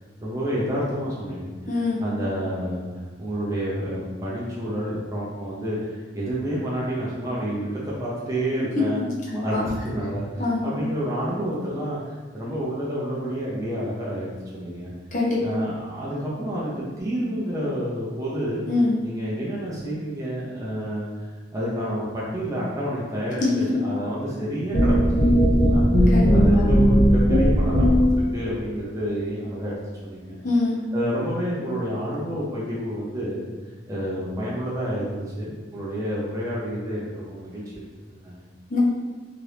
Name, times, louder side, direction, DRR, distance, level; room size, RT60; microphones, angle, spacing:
voice 1, 0.2-1.6 2.0-2.9 3.2-9.0 9.3-14.9 15.4-18.6 19.0-21.1 21.5-29.7 30.0-30.4 30.9-33.4 33.9-37.6 38.2-38.4, equal, 20° right, -7 dB, 0.6 m, -29 dB
voice 2, 1.7-2.0 9.0-9.6 10.4-10.7 15.1-15.4 18.7-19.0 23.4-23.5 26.1-26.3 30.4-30.8 38.7-38.8, left 3 dB, 45° left, -5 dB, 0.8 m, -24 dB
sound 1, 24.7-28.3, equal, 75° left, 1.0 m, -17 dB
2.9 x 2.5 x 3.3 m, 1.3 s
head